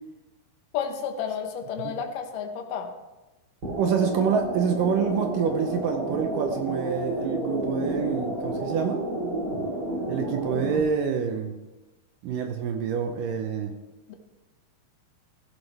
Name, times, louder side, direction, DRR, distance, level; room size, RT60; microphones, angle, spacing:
voice 1, 0.7-2.9 14.1-14.2, left 7 dB, 65° left, 4 dB, 2.6 m, -31 dB
sound 1, 3.6-10.8, right 1 dB, 25° right, 3.6 m, -30 dB
voice 2, 3.8-9.0 10.1-11.5 12.2-13.7, right 7 dB, 75° right, 5 dB, 2.1 m, -27 dB
16.0 x 11.0 x 3.3 m, 1.1 s
omnidirectional pair, 4.5 m